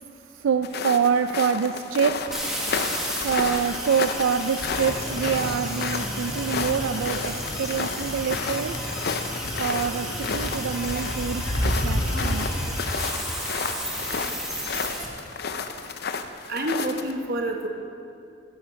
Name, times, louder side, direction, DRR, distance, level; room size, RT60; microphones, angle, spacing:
voice 1, 0.4-2.2 3.2-8.8 9.6-12.5, right 6 dB, 80° right, 9 dB, 0.4 m, -26 dB
sound 1, 0.6-17.1, left 5 dB, 55° left, 0.6 m, -32 dB
sound 2, 2.3-15.1, equal, ahead, 1.5 m, -33 dB
sound 3, 4.6-12.7, equal, 80° left, 2.2 m, -31 dB
voice 2, 16.5-17.7, right 1 dB, 50° right, 3 dB, 1.1 m, -27 dB
14.5 x 9.5 x 5.2 m, 2.5 s
head